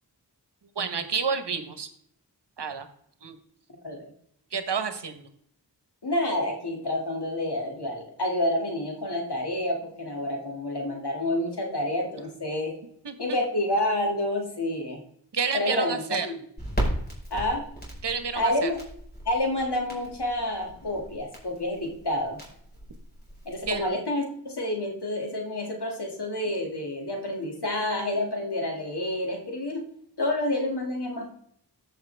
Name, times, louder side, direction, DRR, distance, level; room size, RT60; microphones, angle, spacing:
voice 1, 0.7-1.9 2.6-2.9 3.2-3.4 4.5-5.3 13.0-13.4 15.3-16.3 18.0-18.7 23.7-23.9, right 5 dB, 75° right, 9 dB, 1.1 m, -30 dB
voice 2, 6.0-12.7 13.2-15.0 15.5-16.3 17.3-17.7 18.4-18.8 19.3-22.4 23.5-29.8 30.2-31.3, left 1 dB, 70° left, 1 dB, 2.2 m, -28 dB
Crackle, 16.6-23.9, right 1 dB, 20° left, 4.5 m, -36 dB
14.0 x 5.7 x 3.4 m, 0.69 s
wide cardioid pair, 55°, 41 cm